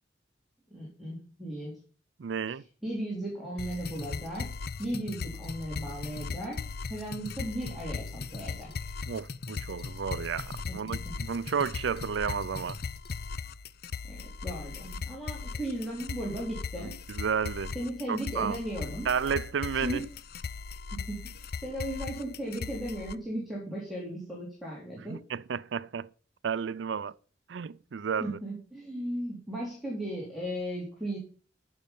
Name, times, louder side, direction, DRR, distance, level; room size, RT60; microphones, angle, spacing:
voice 1, 0.7-1.8 2.8-4.5 4.8-8.9 10.7-11.1 14.1-16.9 17.7-19.1 19.7-20.0 20.9-25.2 28.2-31.2, right 1 dB, ahead, 3.6 m, -36 dB
voice 2, 2.2-2.6 9.1-12.8 16.8-16.9 17.1-17.7 18.1-18.6 19.1-20.0 25.1-26.1 26.4-27.1 27.5-28.3, right 6 dB, 85° right, 0.4 m, -32 dB
sound 1, 3.6-23.2, left 4 dB, 60° left, 0.6 m, -38 dB
13.5 x 6.4 x 5.4 m
head